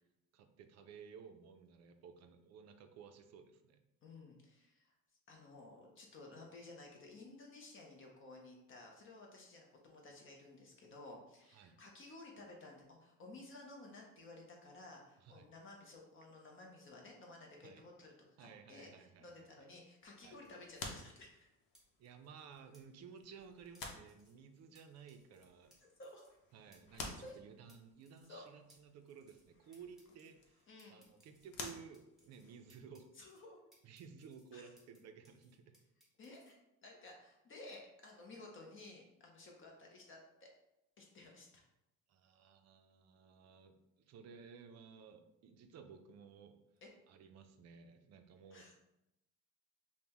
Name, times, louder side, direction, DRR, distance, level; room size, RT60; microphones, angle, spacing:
voice 1, 0.3-3.8 11.5-11.8 15.2-15.5 17.6-17.8 18.4-19.3 19.6-19.7 20.2-20.4 22.0-25.8 26.5-33.1 33.8-35.8 42.1-46.6 47.1-48.7, right 6 dB, 50° right, 7 dB, 0.4 m, -56 dB
voice 2, 4.0-4.9 5.3-18.1 18.4-21.5 26.0-26.3 27.0-27.4 28.3-28.4 30.7-31.1 33.2-33.6 34.5-34.6 36.2-36.5 36.8-40.5 41.0-41.6 46.8-46.9 48.5-48.7, left 2 dB, 35° left, 0 dB, 0.6 m, -55 dB
sound 1, 20.0-32.9, left 3 dB, 75° left, 0.8 m, -53 dB
sound 2, 21.7-21.8 22.7-22.8 23.7-24.3 24.7-24.8 25.1-25.4 25.7-25.8 26.0-26.4 26.7-26.8 27.0-27.4 27.7-27.8 28.0-28.4 28.7-28.8 29.1-29.5 29.7-30.3 30.8-32.4 32.7-33.4 33.7-35.0 35.2-36.5, right 1 dB, ahead, 0.9 m, -69 dB
5.3 x 2.1 x 2.9 m, 0.86 s
cardioid pair, 150°, 34 cm